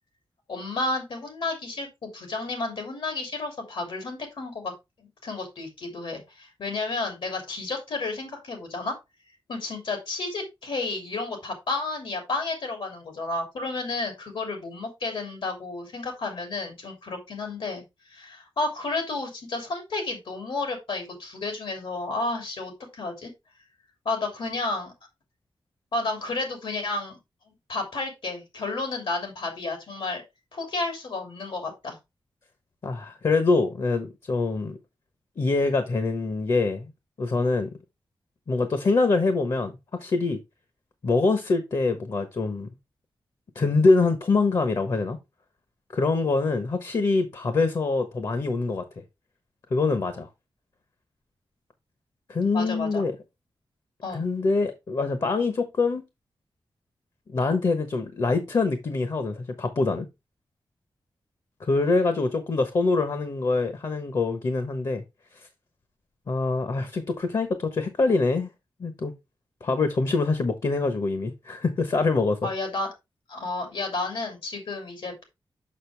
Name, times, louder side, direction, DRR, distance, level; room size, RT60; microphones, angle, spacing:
voice 1, 0.5-4.7 5.0-8.9 9.5-23.3 24.0-24.9 25.9-27.2 27.5-30.2 30.5-32.0 52.5-53.1 54.0-54.3 72.4-72.9 73.3-75.2, left 3 dB, 85° left, 3.0 m, -31 dB
voice 2, 32.8-34.8 35.4-36.9 37.2-37.8 38.5-40.4 41.0-42.7 43.5-45.2 45.9-48.8 49.7-50.3 52.3-53.1 54.1-56.0 57.3-60.1 61.6-65.0 66.3-68.5 68.8-69.1 69.6-72.4, left 3 dB, 55° left, 1.1 m, -24 dB
6.7 x 6.3 x 3.3 m
wide cardioid pair, 135°, 9 cm